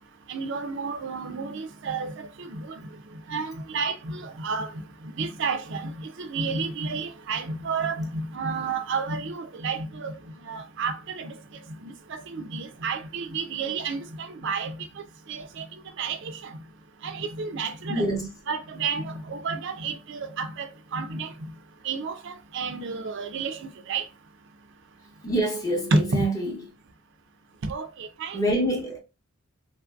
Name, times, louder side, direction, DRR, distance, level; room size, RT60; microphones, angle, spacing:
voice 1, 0.3-2.8 3.3-4.8 5.2-10.2 10.4-11.4 11.8-14.8 15.3-15.6 16.0-16.5 17.0-18.1 18.5-21.5 21.8-24.0 25.9-26.2 27.6-28.4, right 4 dB, 60° right, 0.4 m, -31 dB
voice 2, 17.9-18.3 25.2-26.5 28.3-29.0, right 1 dB, 15° left, 0.7 m, -26 dB
3.0 x 2.5 x 2.3 m
head